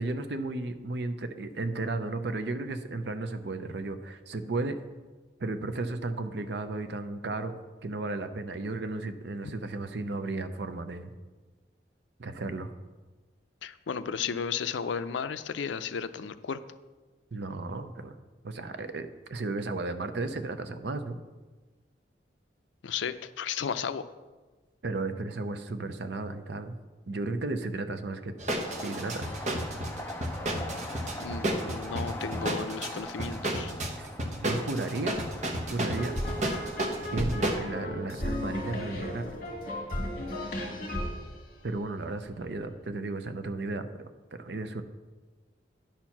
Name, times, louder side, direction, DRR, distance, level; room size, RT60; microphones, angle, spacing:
voice 1, 0.0-4.8 5.4-7.5 7.8-11.1 12.2-12.7 17.3-18.1 18.4-21.2 24.8-26.7 27.1-28.4 28.8-29.2 34.0-34.1 34.4-35.2 35.7-36.1 37.1-39.2 41.6-44.8, right 2 dB, 65° right, 9 dB, 0.6 m, -34 dB
voice 2, 13.6-16.6 22.8-24.1 31.2-33.7, left 6 dB, 80° left, 13 dB, 0.4 m, -34 dB
sound 1, 28.4-37.6, right 1 dB, 40° right, 0.9 m, -32 dB
sound 2, 28.6-37.7, left 1 dB, 10° left, 0.5 m, -42 dB
sound 3, 35.9-42.3, left 1 dB, 50° left, 2.0 m, -35 dB
10.5 x 4.4 x 5.8 m, 1.3 s
head